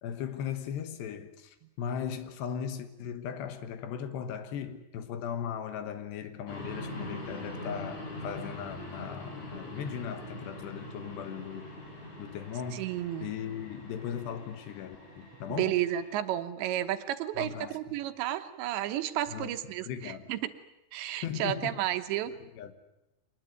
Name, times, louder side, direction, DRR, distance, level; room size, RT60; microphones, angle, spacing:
voice 1, 0.0-11.7 12.2-12.9 13.2-15.8 17.4-17.8 19.3-19.6 19.9-20.3 21.2-21.9 22.4-22.7, left 8 dB, 70° left, 3.3 m, -38 dB
sound 1, 6.5-16.1, left 1 dB, 40° left, 6.6 m, -43 dB
voice 2, 12.7-13.3 15.5-20.5 20.9-22.3, right 12 dB, 80° right, 3.2 m, -32 dB
24.0 x 20.0 x 9.3 m
omnidirectional pair, 5.2 m